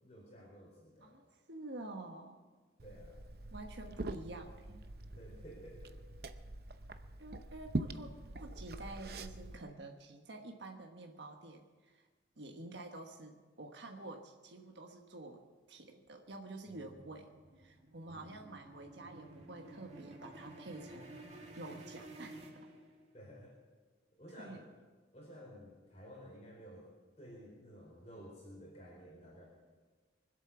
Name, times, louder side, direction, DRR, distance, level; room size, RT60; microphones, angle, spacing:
voice 1, 0.0-1.2 2.8-3.2 5.1-5.9 16.7-16.9 18.1-18.3 23.1-23.6 24.2-24.6 25.1-26.9 27.2-29.5, equal, 35° left, -3 dB, 4.4 m, -53 dB
voice 2, 1.0-2.4 3.5-4.8 7.2-12.1 12.4-15.4 15.7-17.3 17.6-21.2 21.6-22.4 24.4-24.6, right 2 dB, 75° right, 3 dB, 1.3 m, -49 dB
Liquid, 2.8-9.6, right 2 dB, 55° right, 0.8 m, -44 dB
sound 1, 16.1-23.3, right 1 dB, 35° right, 2.3 m, -53 dB
24.0 x 8.3 x 7.0 m, 1.4 s
head